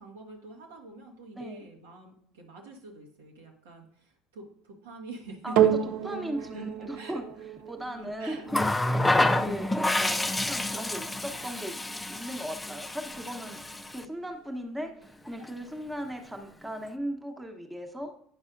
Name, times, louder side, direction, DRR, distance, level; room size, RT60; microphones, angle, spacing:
voice 1, 0.0-5.9 6.4-6.7 6.9-7.2 8.0-8.5, right 3 dB, 75° right, 0 dB, 1.3 m, -45 dB
voice 2, 1.3-1.6 5.4-5.6 6.0-7.2 7.7-8.7 9.2-10.2 10.5-11.8 12.1-13.6 13.9-18.1, equal, 10° right, 3 dB, 1.1 m, -37 dB
sound 1, 5.6-14.1 14.8-14.9, right 10 dB, 60° right, 0.5 m, -32 dB
Water tap faucet, 8.5-14.0 15.3-15.5, left 2 dB, 10° left, 0.5 m, -28 dB
9.7 x 5.3 x 2.6 m, 0.66 s
figure-of-eight pair, 65°, 0 cm